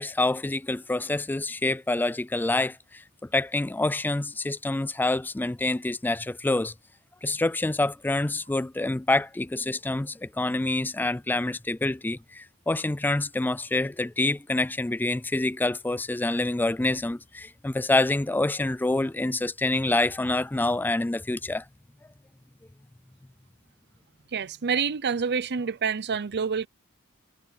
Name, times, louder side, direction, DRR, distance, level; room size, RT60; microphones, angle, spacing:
voice 1, 0.0-3.0 3.3-6.7 7.2-21.6, left 2 dB, 10° left, 0.3 m, -27 dB
voice 2, 24.3-26.7, right 6 dB, 50° right, 0.7 m, -27 dB
head